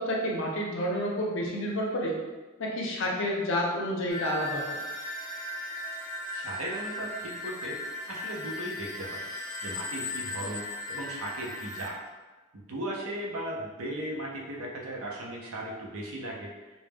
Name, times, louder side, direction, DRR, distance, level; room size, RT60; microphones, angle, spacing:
voice 1, 0.0-2.2 2.6-4.8, equal, 65° left, -1 dB, 0.5 m, -30 dB
sound 1, 4.1-11.9, left 1 dB, 15° left, 0.3 m, -37 dB
voice 2, 6.3-9.3 9.6-12.0 12.5-16.5, right 1 dB, 90° right, -2 dB, 0.6 m, -37 dB
2.1 x 2.1 x 3.3 m, 1.2 s
head